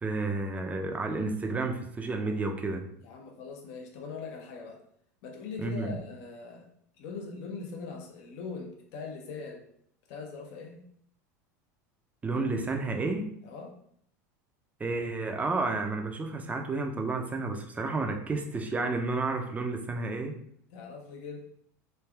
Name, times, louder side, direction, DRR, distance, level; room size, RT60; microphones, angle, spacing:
voice 1, 0.0-2.9 5.6-6.0 12.2-13.3 14.8-20.4, right 3 dB, 15° right, 4 dB, 0.4 m, -31 dB
voice 2, 3.0-4.8 5.2-6.7 7.0-9.6 10.1-10.9 13.4-13.8 20.7-21.5, left 4 dB, 65° left, 1 dB, 0.7 m, -41 dB
3.2 x 2.4 x 2.3 m, 0.67 s
hypercardioid pair, 100°, 9 cm